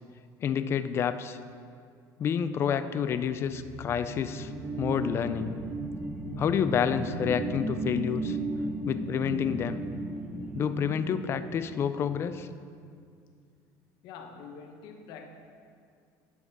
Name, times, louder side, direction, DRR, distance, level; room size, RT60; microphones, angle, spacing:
voice 1, 0.4-1.4 2.2-4.5 4.8-5.5 6.4-8.4 8.8-9.8 10.5-12.5, left 7 dB, 35° left, 0.4 m, -29 dB
sound 1, 3.2-12.4, right 2 dB, 15° right, 0.9 m, -36 dB
voice 2, 14.0-15.3, left 6 dB, 65° left, 1.0 m, -45 dB
9.7 x 5.9 x 5.3 m
cardioid pair, 140°, 8 cm